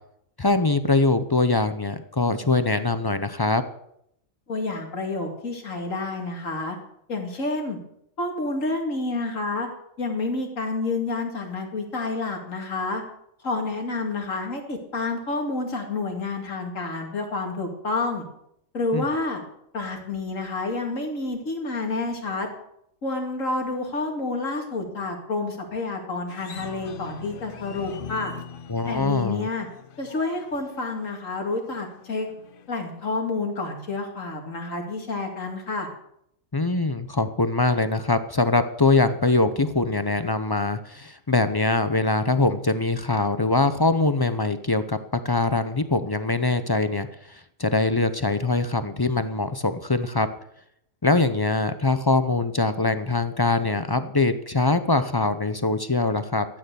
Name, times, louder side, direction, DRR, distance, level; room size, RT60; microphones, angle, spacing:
voice 1, 0.4-3.6 18.9-19.1 28.7-29.5 36.5-45.0 45.2-50.3 51.0-56.5, left 3 dB, 25° left, 11 dB, 0.5 m, -23 dB
voice 2, 4.5-6.8 7.1-7.8 8.2-9.7 10.0-13.0 13.4-18.2 18.7-19.4 19.7-22.5 23.0-28.3 28.9-29.7 30.0-32.3 32.7-35.9, left 3 dB, 70° left, 3 dB, 2.8 m, -29 dB
sound 1, 26.3-32.9, left 6 dB, 50° left, 0.8 m, -42 dB
13.5 x 9.2 x 6.9 m, 0.74 s
omnidirectional pair, 1.4 m